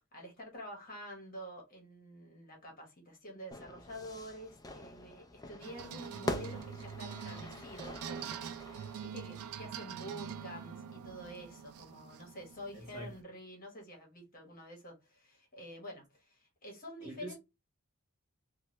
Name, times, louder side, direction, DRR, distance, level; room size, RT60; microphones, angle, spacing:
voice 1, 0.1-17.4, equal, 40° left, 1.1 m, -48 dB
Fire / Fireworks, 3.5-9.1, left 1 dB, 15° left, 0.3 m, -44 dB
sound 1, 5.6-13.2, right 7 dB, 80° right, 0.4 m, -45 dB
voice 2, 12.7-13.1 17.0-17.4, right 1 dB, 35° right, 1.2 m, -45 dB
2.9 x 2.2 x 3.0 m
head